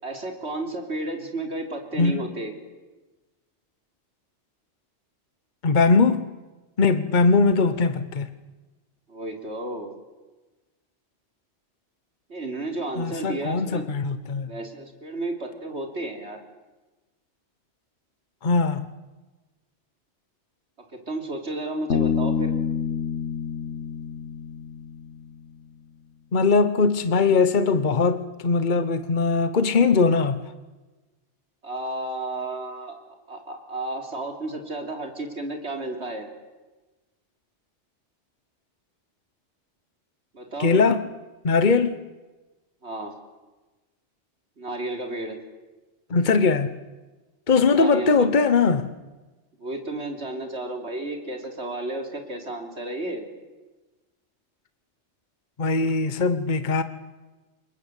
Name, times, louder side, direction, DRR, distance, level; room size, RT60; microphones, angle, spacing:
voice 1, 0.0-2.6 9.1-9.9 12.3-13.8 14.5-16.4 20.9-22.5 31.6-36.3 40.3-40.8 42.8-43.2 44.6-45.4 47.7-48.3 49.6-53.2, right 2 dB, 70° right, 3.9 m, -32 dB
voice 2, 5.6-6.2 6.8-8.3 13.0-14.5 18.4-18.8 26.3-30.4 40.6-41.0 41.4-42.0 46.1-46.7 47.5-48.9 55.6-56.8, left 4 dB, 45° left, 1.2 m, -20 dB
Bass guitar, 21.9-25.4, left 7 dB, 85° left, 1.8 m, -27 dB
27.5 x 22.5 x 8.3 m
omnidirectional pair, 1.2 m